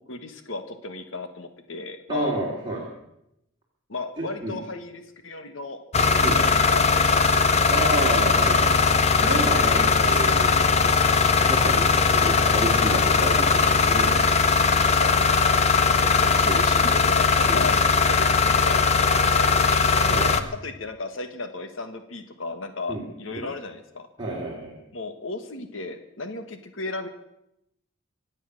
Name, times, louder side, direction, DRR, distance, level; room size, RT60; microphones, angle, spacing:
voice 1, 0.1-2.3 3.9-5.8 6.3-8.2 15.0-15.1 15.7-17.7 18.1-20.0 20.6-24.1 24.9-27.1, left 3 dB, 75° left, 8 dB, 1.4 m, -35 dB
voice 2, 2.1-2.8 4.2-4.6 6.2-6.4 7.7-10.6 11.5-14.1 16.4-16.6 17.5-17.7 20.1-20.4 22.9-23.0 23.3-23.5 24.2-24.8, right 2 dB, 25° right, -3 dB, 2.9 m, -30 dB
sound 1, 5.9-20.4, left 5 dB, 30° left, 0.8 m, -20 dB
25.0 x 8.4 x 6.4 m, 0.82 s
head